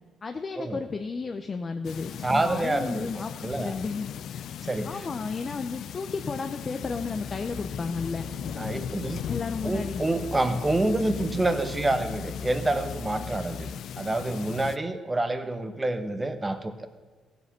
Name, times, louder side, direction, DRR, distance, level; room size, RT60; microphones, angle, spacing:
voice 1, 0.2-4.4 4.8-8.6 9.3-10.1, left 4 dB, 35° left, 6 dB, 0.6 m, -33 dB
sound 1, 1.8-14.8, left 9 dB, 70° left, 0.3 m, -38 dB
voice 2, 2.2-3.1 3.4-3.7 4.6-5.1 8.6-9.2 9.6-13.7 14.0-16.9, right 2 dB, 20° right, 9 dB, 1.0 m, -27 dB
sound 2, 6.8-13.7, left 2 dB, 40° right, 2.0 m, -42 dB
15.0 x 7.0 x 6.0 m, 1.4 s
cardioid pair, 90°, 0 cm